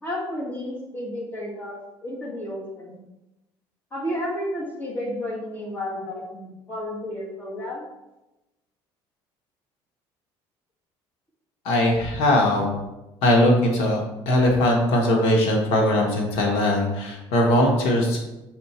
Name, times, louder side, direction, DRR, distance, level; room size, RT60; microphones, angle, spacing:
voice 1, 0.0-3.0 3.9-7.8, left 1 dB, 20° left, -5 dB, 1.9 m, -32 dB
voice 2, 11.6-12.7 13.2-14.0 14.3-18.2, left 1 dB, 75° left, 0 dB, 1.3 m, -20 dB
6.4 x 4.1 x 4.4 m, 0.98 s
cardioid pair, 165°, 10 cm